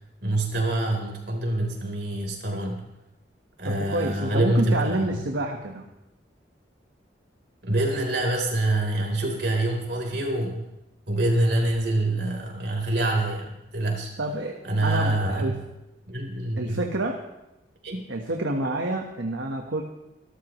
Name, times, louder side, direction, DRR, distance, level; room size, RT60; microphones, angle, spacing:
voice 1, 0.2-2.9 3.6-5.2 7.6-10.6 11.1-14.1 14.6-15.6 16.1-16.8 17.8-18.0, right 1 dB, 65° right, 1 dB, 4.0 m, -26 dB
voice 2, 3.6-5.8 14.2-14.6 14.8-15.5 16.6-17.2 18.1-19.8, right 2 dB, 90° right, 2 dB, 1.4 m, -28 dB
27.5 x 13.0 x 3.2 m, 0.93 s
head